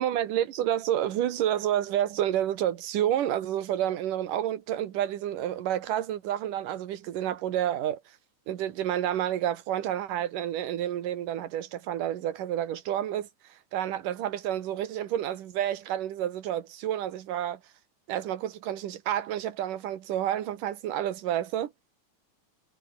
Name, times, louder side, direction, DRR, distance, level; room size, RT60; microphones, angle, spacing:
voice 1, 0.0-8.0 8.5-13.3 13.7-17.6 18.1-21.7, right 11 dB, 85° right, 3.1 m, -29 dB
omnidirectional pair, 3.7 m